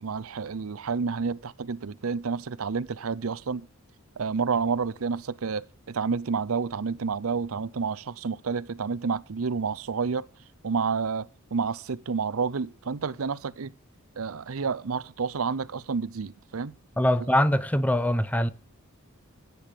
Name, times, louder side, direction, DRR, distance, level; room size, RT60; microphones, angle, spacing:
voice 1, 0.0-3.7 4.2-10.3 10.6-13.7 14.2-16.7, right 5 dB, 70° right, 0.6 m, -29 dB
voice 2, 17.0-18.5, left 1 dB, 5° left, 0.8 m, -23 dB
15.0 x 9.4 x 6.7 m
head